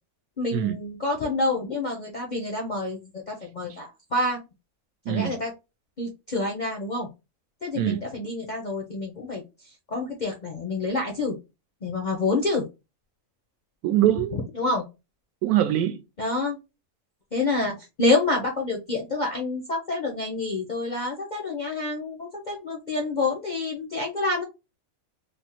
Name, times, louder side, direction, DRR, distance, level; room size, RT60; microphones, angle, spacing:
voice 1, 0.4-4.4 5.1-5.5 6.0-7.1 7.6-11.4 11.8-12.7 14.5-14.9 16.2-16.6 17.3-24.4, left 2 dB, 55° left, 0.5 m, -28 dB
voice 2, 7.7-8.0 13.8-14.4 15.4-16.0, right 12 dB, 80° right, 1.1 m, -23 dB
3.4 x 2.0 x 2.8 m
omnidirectional pair, 1.6 m